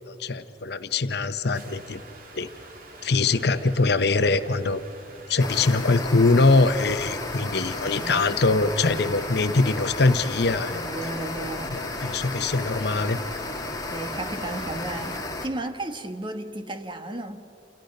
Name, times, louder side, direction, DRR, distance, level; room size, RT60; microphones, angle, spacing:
voice 1, 0.0-2.0 2.3-2.5 3.0-4.8 5.3-10.8 11.7-13.2, left 3 dB, 65° left, 0.9 m, -23 dB
sound 1, 1.5-15.2, right 2 dB, 55° right, 2.5 m, -46 dB
sound 2, 5.4-15.5, left 2 dB, 20° left, 2.0 m, -33 dB
voice 2, 7.9-8.3 10.7-11.8 13.9-17.5, right 2 dB, 30° right, 1.4 m, -34 dB
29.5 x 27.5 x 5.4 m
head